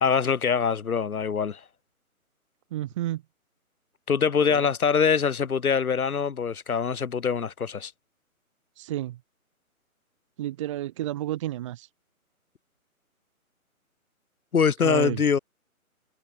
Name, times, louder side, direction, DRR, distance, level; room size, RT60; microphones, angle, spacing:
voice 1, 0.0-1.6 4.1-7.9 14.5-15.4, left 6 dB, 80° left, 1.2 m, -24 dB
voice 2, 2.7-3.2 4.4-4.7 8.8-9.2 10.4-11.9 14.8-15.2, right 14 dB, 20° right, 1.2 m, -31 dB
figure-of-eight pair, 145°, 43 cm